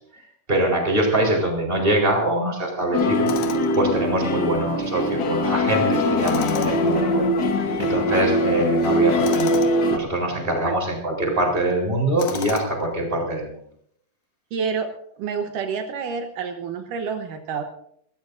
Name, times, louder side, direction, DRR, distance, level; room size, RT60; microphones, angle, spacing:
voice 1, 0.5-3.3 3.7-7.3 7.8-9.5 9.9-13.5, right 1 dB, 15° right, 1 dB, 4.1 m, -23 dB
Street ambience summer guitar plays, 2.9-10.0, left 1 dB, 60° left, 1.1 m, -22 dB
Tools, 3.3-3.8 6.2-6.9 9.2-9.8 12.2-12.9, left 8 dB, 75° left, 2.8 m, -33 dB
voice 2, 14.5-14.9 15.2-17.6, right 6 dB, 75° right, 5 dB, 2.6 m, -28 dB
29.5 x 14.0 x 2.6 m, 0.68 s
omnidirectional pair, 3.8 m